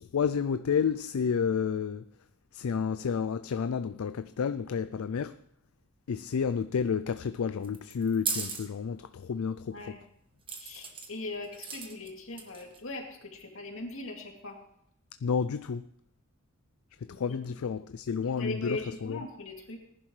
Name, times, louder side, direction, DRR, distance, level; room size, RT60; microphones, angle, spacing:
voice 1, 0.0-2.0 2.5-5.4 6.1-10.0 15.2-15.9 17.0-19.2, left 6 dB, 90° left, 0.4 m, -30 dB
sound 1, 7.6-8.7 10.5-11.1 11.5-12.1 12.4-12.8, right 5 dB, 25° right, 1.4 m, -35 dB
voice 2, 10.6-14.6 17.1-17.4 18.2-19.8, left 2 dB, 70° left, 2.5 m, -40 dB
19.5 x 11.0 x 3.2 m
head